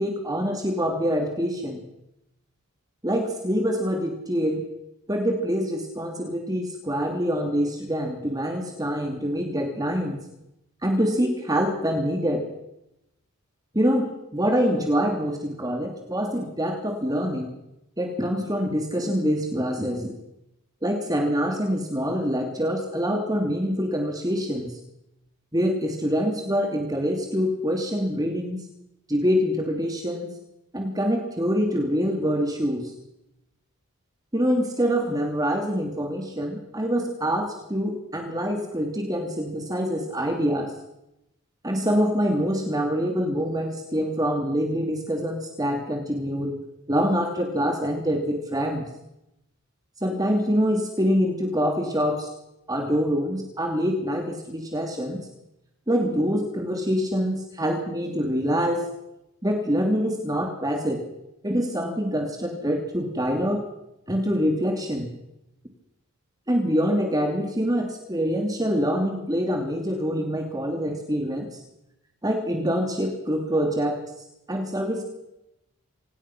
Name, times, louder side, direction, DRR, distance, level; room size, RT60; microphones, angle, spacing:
voice 1, 0.0-1.8 3.0-4.6 5.1-10.2 10.8-12.4 13.7-17.5 18.0-20.2 20.8-24.7 25.5-28.6 29.1-30.3 30.7-32.9 34.3-40.7 41.6-46.6 46.9-48.8 50.0-52.3 52.7-55.2 55.9-58.9 59.4-61.0 61.4-63.6 64.1-65.1 66.5-71.6 72.2-74.1 74.5-75.0, equal, 15° right, 3 dB, 2.8 m, -25 dB
26.0 x 19.0 x 6.1 m, 0.84 s
head